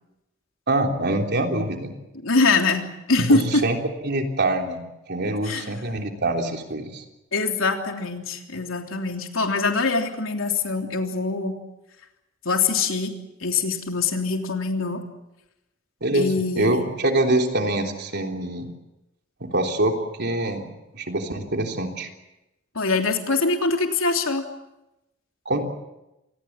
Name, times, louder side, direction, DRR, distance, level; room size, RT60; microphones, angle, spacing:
voice 1, 0.7-1.9 3.3-3.8 4.0-7.0 16.0-16.3 16.5-18.7 19.4-20.7 20.9-22.1 25.4-25.6, right 2 dB, 55° right, 3 dB, 3.5 m, -24 dB
voice 2, 2.2-3.6 5.4-5.7 7.3-11.5 12.4-13.1 13.4-15.0 16.1-16.9 22.7-24.4, left 3 dB, 85° left, 3 dB, 3.3 m, -23 dB
26.5 x 20.0 x 7.4 m, 0.94 s
head